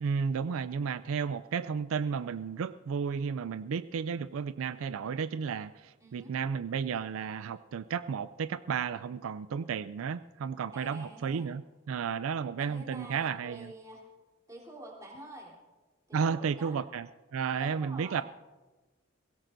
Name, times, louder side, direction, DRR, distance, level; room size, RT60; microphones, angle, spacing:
voice 1, 0.0-13.7 16.1-17.1 17.3-18.2, right 6 dB, 75° right, 14 dB, 0.4 m, -33 dB
voice 2, 6.0-6.3 10.7-11.5 12.6-14.0 14.5-15.6 16.1-16.8 17.6-18.2, right 1 dB, 15° right, -3 dB, 3.4 m, -47 dB
23.5 x 16.5 x 2.6 m, 1.2 s
head